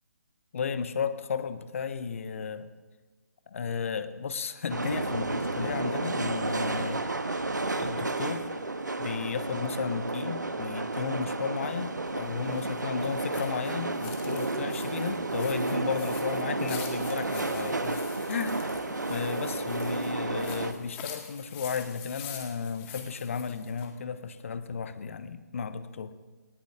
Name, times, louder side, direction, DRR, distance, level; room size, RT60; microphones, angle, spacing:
voice 1, 0.5-2.7 3.5-7.5 7.8-8.5 9.0-18.7 19.1-26.2, left 6 dB, 45° left, 12 dB, 1.1 m, -34 dB
sound 1, 4.7-20.7, right 2 dB, 80° right, 1.4 m, -32 dB
sound 2, 11.6-23.9, left 8 dB, 20° left, 1.8 m, -46 dB
19.0 x 18.5 x 3.7 m, 1.3 s
figure-of-eight pair, 140°, 10 cm